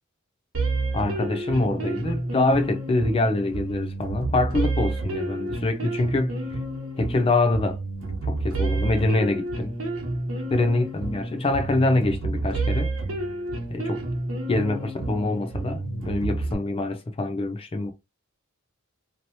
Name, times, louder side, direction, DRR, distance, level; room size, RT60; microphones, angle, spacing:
sound 1, 0.5-16.5, right 2 dB, 75° right, 1.1 m, -29 dB
voice 1, 0.9-6.4 7.0-7.8 8.3-9.7 10.5-12.9 13.7-14.0 14.5-17.9, left 2 dB, 25° left, 0.4 m, -25 dB
3.0 x 2.8 x 2.7 m
head